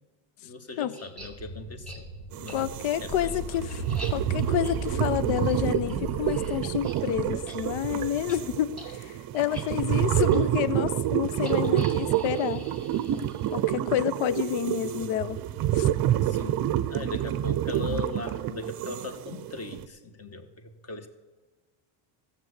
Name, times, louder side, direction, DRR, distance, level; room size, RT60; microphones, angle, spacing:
voice 1, 0.4-2.1 2.4-2.7 3.0-3.3 16.2-21.1, left 3 dB, 30° left, 7 dB, 1.5 m, -39 dB
sound 1, 0.9-1.3 1.8-2.0 2.5-2.6 3.0-7.0 7.3-7.6 7.8-8.0 8.3-8.4 8.7-8.9 9.3-9.6 10.3-10.4 11.4-13.8, equal, ahead, 2.7 m, -45 dB
sound 2, 1.2-8.3, right 1 dB, 90° left, 4.4 m, -37 dB
sound 3, 2.3-19.9, right 12 dB, 45° right, 0.6 m, -28 dB
voice 2, 2.5-12.6 13.5-15.4 15.7-15.9, left 11 dB, 70° left, 16 dB, 0.9 m, -29 dB
14.0 x 7.1 x 8.1 m, 1.3 s
cardioid pair, 115°, 49 cm